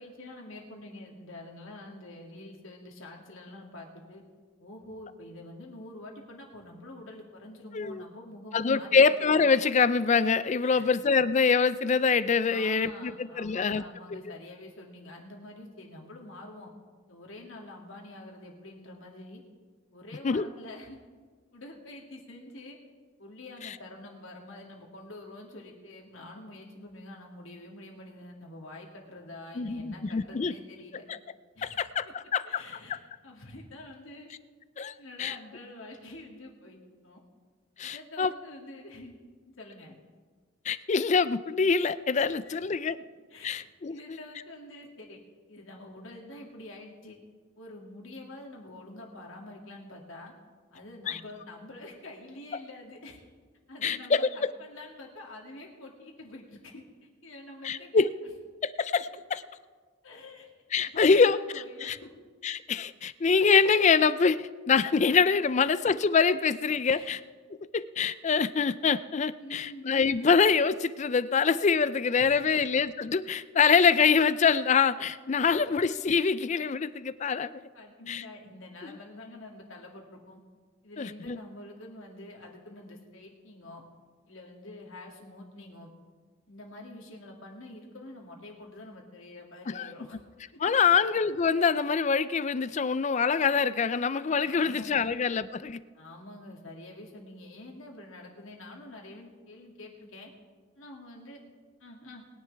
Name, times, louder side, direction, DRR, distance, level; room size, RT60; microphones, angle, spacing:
voice 1, 0.0-4.2 4.6-9.1 10.6-10.9 12.5-16.7 17.1-19.4 19.9-21.0 21.5-22.8 23.2-31.0 31.5-32.1 32.4-34.3 35.0-36.8 37.0-37.2 37.8-39.2 39.5-40.0 42.4-42.6 43.3-43.6 43.9-45.2 45.5-47.2 47.6-50.3 50.7-53.2 53.7-57.9 60.0-60.5 60.9-62.1 65.6-65.7 66.9-67.1 69.4-69.9 72.2-72.6 75.4-75.8 77.7-80.4 80.8-83.8 84.3-85.9 86.5-90.2 90.8-91.0 94.4-95.1 95.9-100.3 100.8-101.4 101.8-102.2, left 1 dB, 75° left, 0 dB, 2.4 m, -46 dB
voice 2, 7.7-8.0 8.5-13.8 14.1-14.2 20.2-20.5 23.6-23.8 29.6-30.5 31.6-32.6 32.9-33.0 34.8-34.9 35.2-35.4 37.8-38.3 40.7-43.0 43.4-44.2 51.1-51.2 53.8-54.3 57.6-58.1 58.6-59.4 60.7-61.4 61.8-62.0 62.4-67.2 67.7-77.6 78.1-78.2 78.8-79.0 81.0-81.4 89.7-89.9 90.6-95.8, left 5 dB, 35° left, 15 dB, 0.4 m, -25 dB
21.0 x 10.0 x 3.4 m, 1.5 s
head